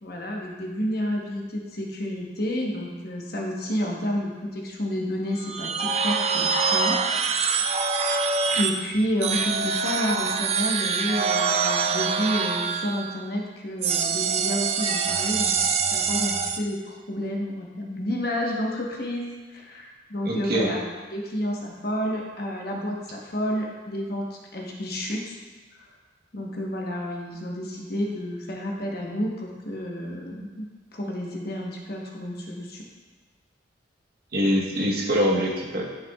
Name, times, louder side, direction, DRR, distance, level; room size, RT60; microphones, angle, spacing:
voice 1, 0.0-7.6 8.5-15.5 15.9-20.8 21.1-25.3 25.8-25.9 26.3-30.7 30.9-32.8, equal, 50° left, -1 dB, 1.0 m, -30 dB
sound 1, 5.4-8.8 9.2-13.2 13.8-16.6, right 5 dB, 30° right, 0.3 m, -25 dB
voice 2, 20.2-20.7 34.3-35.8, equal, 50° right, -2 dB, 1.1 m, -23 dB
10.0 x 5.8 x 2.3 m, 1.3 s
head